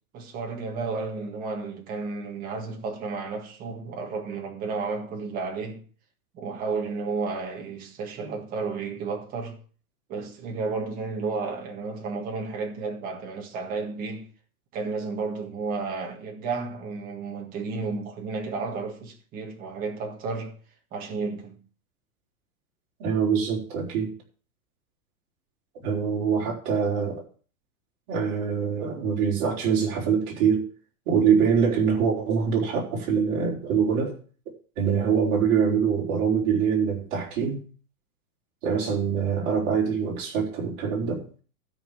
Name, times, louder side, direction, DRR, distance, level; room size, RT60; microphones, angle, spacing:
voice 1, 0.1-5.8 6.3-9.6 10.1-14.3 14.7-20.6 20.9-21.6, right 4 dB, 20° right, 1.7 m, -32 dB
voice 2, 23.0-24.1 25.8-27.2 28.1-30.7 31.1-34.2 34.8-37.6 38.6-41.3, right 6 dB, 35° right, 4.6 m, -24 dB
13.0 x 5.4 x 7.0 m
supercardioid pair, 170°, 43 cm